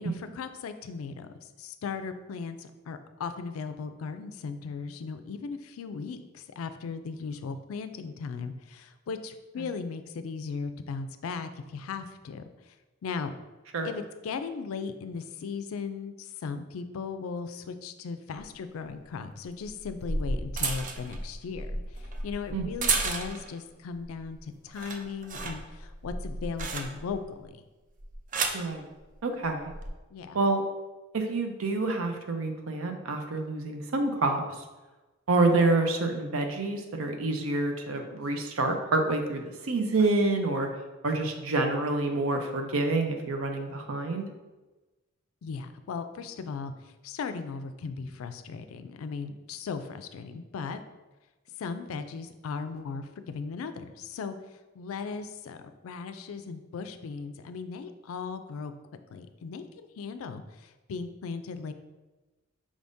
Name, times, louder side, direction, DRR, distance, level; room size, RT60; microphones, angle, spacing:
voice 1, 0.0-12.4 13.0-13.3 13.8-27.6 30.1-30.4 45.4-50.8 51.6-54.3 54.8-55.6 55.8-58.7 59.1-61.7, left 5 dB, 90° left, 10 dB, 0.4 m, -37 dB
sound 1, 18.4-18.5 19.6-23.6 24.0-24.4 24.7-27.2 28.0-28.7 29.6-29.9, right 3 dB, 40° right, 0.4 m, -33 dB
voice 2, 28.5-28.9 29.2-29.7 30.3-30.6 31.1-34.4 35.3-40.7 41.0-44.2, right 2 dB, 85° right, 5 dB, 0.6 m, -27 dB
5.0 x 3.5 x 2.6 m, 1.1 s
head